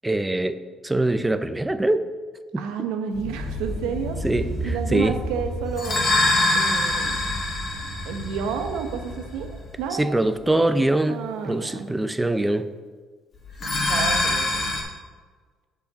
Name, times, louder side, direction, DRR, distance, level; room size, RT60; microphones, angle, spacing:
voice 1, 0.0-0.6 0.8-2.0 2.5-2.7 4.2-5.1 9.9-12.7, right 1 dB, 15° right, 12 dB, 0.5 m, -23 dB
voice 2, 2.6-4.2 4.6-6.0 6.5-7.1 8.0-9.5 9.8-10.2 11.1-11.9 13.9-14.7, right 6 dB, 80° right, 6 dB, 0.8 m, -30 dB
sound 1, 3.1-9.8 13.5-14.8, left 1 dB, 45° left, 2.0 m, -25 dB
7.0 x 4.9 x 5.1 m, 1.5 s
supercardioid pair, 65°, 0 cm